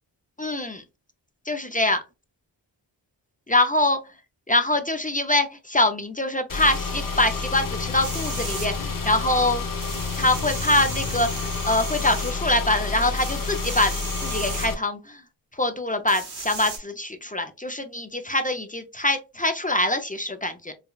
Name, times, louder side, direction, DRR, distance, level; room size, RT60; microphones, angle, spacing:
voice 1, 0.4-0.8 1.5-2.0 3.5-4.0 4.5-9.6 10.2-13.9 14.2-15.0 15.6-20.7, left 2 dB, 20° left, 0.4 m, -24 dB
Car / Engine, 6.5-14.7, left 4 dB, 45° left, 0.8 m, -29 dB
sound 1, 8.0-8.7 9.8-12.3 13.2-14.7 16.1-16.8, right 3 dB, 55° right, 1.3 m, -36 dB
4.8 x 2.2 x 2.2 m
wide cardioid pair, 110°, 46 cm